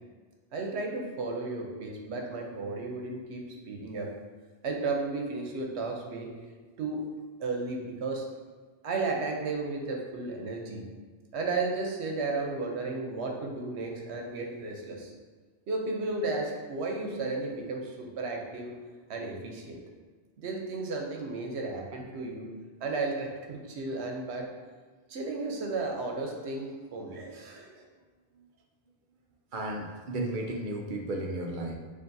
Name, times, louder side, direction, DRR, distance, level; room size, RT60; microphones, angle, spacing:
voice 1, 0.5-4.1 4.6-6.3 6.8-7.0 7.4-8.3 8.8-10.8 11.3-15.1 15.7-18.8 19.1-19.8 20.4-22.5 22.8-24.5 25.1-27.8, right 3 dB, 80° right, 1 dB, 1.0 m, -34 dB
voice 2, 29.5-31.8, right 1 dB, 55° right, 1 dB, 0.7 m, -34 dB
6.5 x 2.5 x 2.6 m, 1.4 s
omnidirectional pair, 1.1 m